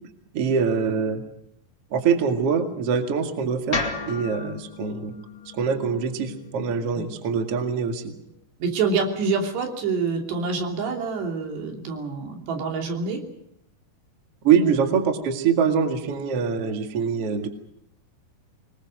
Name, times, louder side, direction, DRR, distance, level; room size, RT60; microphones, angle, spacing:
voice 1, 0.3-1.2 1.9-3.8 4.1-5.1 5.5-8.0 14.4-17.5, right 6 dB, 45° right, 5 dB, 2.5 m, -23 dB
sound 1, 3.7-7.9, left 4 dB, 25° left, 2.0 m, -34 dB
voice 2, 8.6-13.2 14.6-14.9, right 4 dB, 80° right, 2 dB, 5.2 m, -26 dB
25.5 x 21.5 x 6.5 m, 0.75 s
omnidirectional pair, 4.8 m